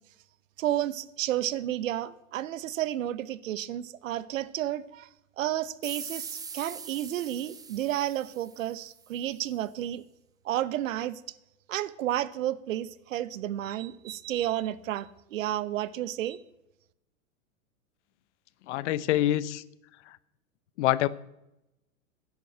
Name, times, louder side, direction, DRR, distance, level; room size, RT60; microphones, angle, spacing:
voice 1, 0.6-5.1 5.4-10.0 10.4-11.2 11.7-16.4, right 12 dB, 65° right, 0.9 m, -31 dB
sound 1, 5.8-9.1, right 6 dB, 10° right, 0.5 m, -42 dB
voice 2, 18.7-19.6 20.8-21.1, left 14 dB, 55° left, 0.8 m, -25 dB
10.5 x 8.1 x 9.0 m
hypercardioid pair, 105°, 42 cm